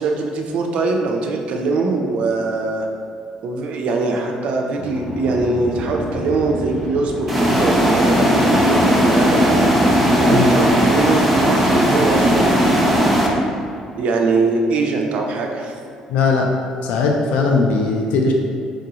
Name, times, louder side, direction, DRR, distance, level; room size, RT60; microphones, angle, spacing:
voice 1, 0.0-2.9 3.4-13.0 14.0-15.7, right 3 dB, 65° right, 2 dB, 0.4 m, -22 dB
sound 1, 4.7-13.7, left 1 dB, 45° left, 0.7 m, -30 dB
sound 2, 7.3-13.3, equal, ahead, 0.5 m, -16 dB
voice 2, 16.1-16.5 16.8-18.3, left 4 dB, 85° left, 1 dB, 0.4 m, -18 dB
4.6 x 2.5 x 2.8 m, 2.4 s
cardioid pair, 125°, 2 cm